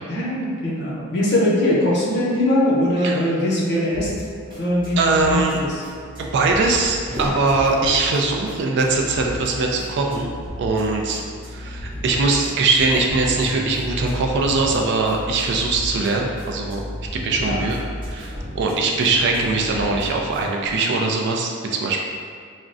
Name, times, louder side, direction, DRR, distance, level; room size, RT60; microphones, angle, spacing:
voice 1, 0.1-4.1 4.6-5.8 17.4-17.7, left 1 dB, 55° left, -6 dB, 0.7 m, -21 dB
sound 1, 3.9-20.7, left 1 dB, 25° right, 0.9 m, -34 dB
voice 2, 5.0-5.6 6.2-10.3 10.6-11.2 11.5-16.8 17.1-17.8 18.1-22.0, right 3 dB, 55° right, 0 dB, 0.3 m, -21 dB
sound 2, 7.0-8.3, equal, 5° left, 0.9 m, -33 dB
3.5 x 2.1 x 2.5 m, 2.1 s
head